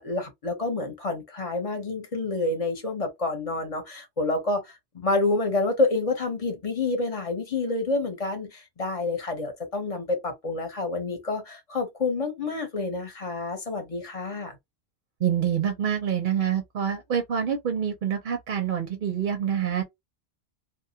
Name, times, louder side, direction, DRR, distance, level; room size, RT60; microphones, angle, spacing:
voice 1, 0.0-14.6, left 3 dB, 35° left, 0.8 m, -28 dB
voice 2, 15.2-19.8, right 8 dB, 55° right, 0.7 m, -26 dB
2.2 x 2.1 x 2.7 m
omnidirectional pair, 1.1 m